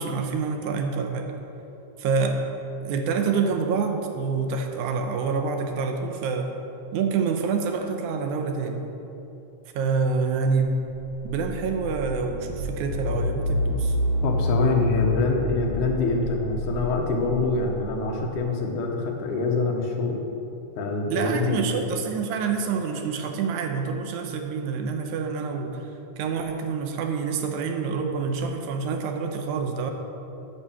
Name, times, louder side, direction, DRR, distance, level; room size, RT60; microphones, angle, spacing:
voice 1, 0.0-1.3 2.0-2.4 2.8-6.5 6.9-8.9 9.8-10.8 11.2-14.0 21.1-25.8 26.2-29.9, right 5 dB, 85° right, 4 dB, 2.2 m, -27 dB
sound 1, 10.9-18.4, left 1 dB, 50° right, 3.3 m, -29 dB
voice 2, 14.2-20.2 20.8-21.8, left 3 dB, 90° left, 1 dB, 2.6 m, -25 dB
9.8 x 5.5 x 7.0 m, 3.0 s
omnidirectional pair, 3.5 m